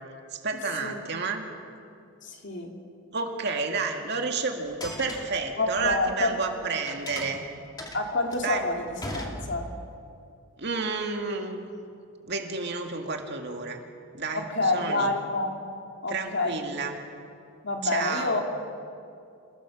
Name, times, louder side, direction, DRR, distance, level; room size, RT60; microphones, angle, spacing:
voice 1, 0.3-1.4 3.1-7.5 8.4-8.7 10.6-11.6 12.3-13.8 14.1-15.1 16.1-17.0 17.8-18.4, right 4 dB, 55° right, 3 dB, 2.2 m, -30 dB
voice 2, 2.2-2.7 5.6-6.4 7.9-9.7 14.3-15.6 16.0-16.6 17.6-18.4, left 2 dB, 60° left, 2 dB, 2.8 m, -28 dB
sound 1, 4.7-6.5 6.9-9.9, left 1 dB, 20° left, 2.4 m, -39 dB
27.5 x 17.5 x 7.3 m, 2.5 s
head